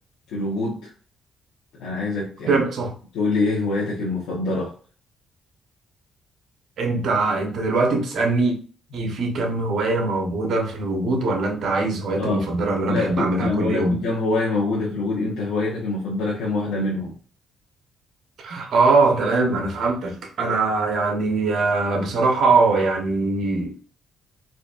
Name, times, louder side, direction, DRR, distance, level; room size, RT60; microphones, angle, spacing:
voice 1, 0.3-0.9 1.8-2.6 3.1-4.7 12.2-12.4 12.9-17.2, left 2 dB, 90° left, 1.2 m, -25 dB
voice 2, 2.5-2.9 6.8-8.6 8.9-14.0 18.4-23.9, right 3 dB, 65° right, 1.1 m, -22 dB
4.1 x 2.6 x 2.5 m
cardioid pair, 90°, 0 cm